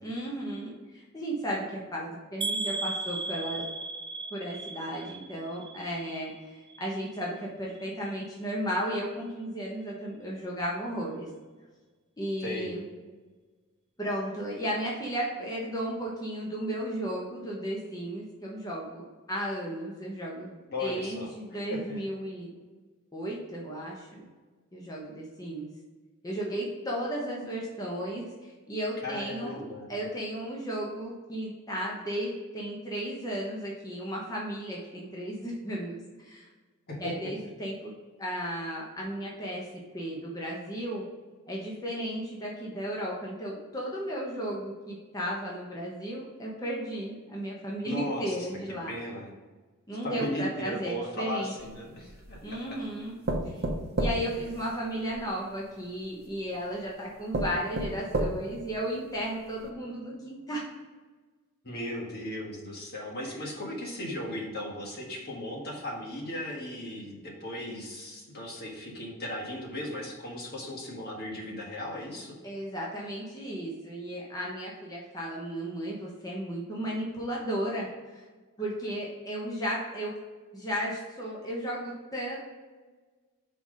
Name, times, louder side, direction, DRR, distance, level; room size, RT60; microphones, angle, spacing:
voice 1, 0.0-3.6 4.3-11.3 12.2-12.8 14.0-19.0 19.3-22.5 23.1-24.2 24.7-25.7 26.2-29.6 29.9-36.5 37.0-37.9 38.2-39.7 39.9-41.0 41.5-48.9 49.9-51.5 52.4-53.2 53.4-53.6 54.0-60.7 63.3-63.4 72.4-78.3 78.6-80.1 80.5-82.4, equal, 15° left, -4 dB, 1.1 m, -34 dB
sound 1, 2.4-6.4 6.7-7.3 7.8-7.9 8.2-8.3, right 3 dB, 25° right, 0.4 m, -36 dB
voice 2, 12.4-12.7 20.7-21.3 21.7-21.8 29.0-29.9 36.9-37.1 47.8-48.4 48.9-49.3 50.0-52.8 61.6-72.3, left 1 dB, 50° left, -1 dB, 1.5 m, -36 dB
sound 2, 51.6-52.5 53.3-55.2 56.2-56.3 56.9-57.0 57.3-58.7 59.2-59.3 59.6-59.7, right 1 dB, 45° right, 0.9 m, -31 dB
5.6 x 4.2 x 5.0 m, 1.3 s
head